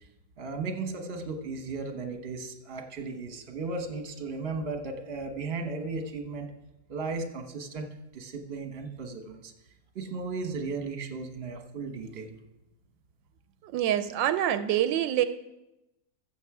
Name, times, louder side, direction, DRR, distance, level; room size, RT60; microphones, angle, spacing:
voice 1, 0.4-6.5 6.9-7.9 8.1-9.5 9.9-12.4, right 3 dB, 40° right, 4 dB, 1.2 m, -35 dB
voice 2, 13.6-15.2, right 11 dB, 85° right, 12 dB, 1.3 m, -26 dB
14.5 x 7.1 x 4.8 m, 0.95 s
omnidirectional pair, 2.0 m